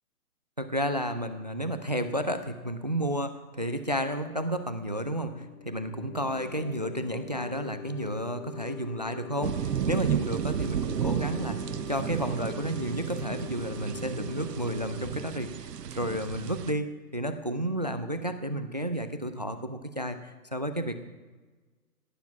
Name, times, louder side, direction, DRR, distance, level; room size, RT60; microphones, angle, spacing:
voice 1, 0.6-21.0, equal, 30° right, 10 dB, 0.5 m, -32 dB
sound 1, 5.4-16.8, left 10 dB, 75° left, 0.9 m, -45 dB
sound 2, 9.4-16.7, right 9 dB, 85° right, 0.8 m, -33 dB
18.0 x 9.6 x 5.8 m, 1.3 s
hypercardioid pair, 170°, 47 cm